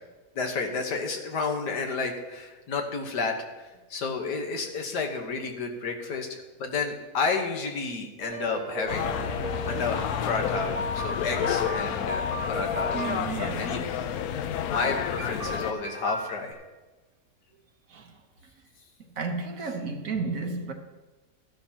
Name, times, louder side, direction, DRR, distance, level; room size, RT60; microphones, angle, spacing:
voice 1, 0.4-9.1 9.7-13.0 13.6-13.8 14.7-16.6, left 4 dB, 85° left, 1.8 m, -31 dB
sound 1, 8.2-9.9 10.5-13.2 14.7-16.5, left 1 dB, 35° right, 2.0 m, -35 dB
sound 2, 8.9-15.7, left 9 dB, 70° left, 1.1 m, -30 dB
voice 2, 12.9-14.0 17.9-18.1 19.2-20.7, right 4 dB, 60° right, 1.4 m, -32 dB
14.0 x 11.5 x 2.9 m
omnidirectional pair, 1.7 m